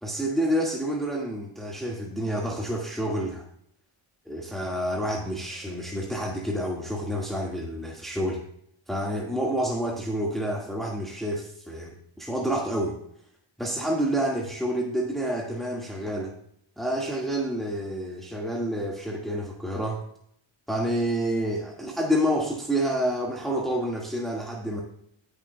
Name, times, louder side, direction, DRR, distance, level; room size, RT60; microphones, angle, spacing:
voice 1, 0.0-3.4 4.2-8.4 8.9-13.0 13.6-16.3 16.8-20.0 20.7-24.8, equal, ahead, -2 dB, 1.7 m, -28 dB
18.5 x 6.8 x 2.2 m, 0.69 s
wide cardioid pair, 70°, 49 cm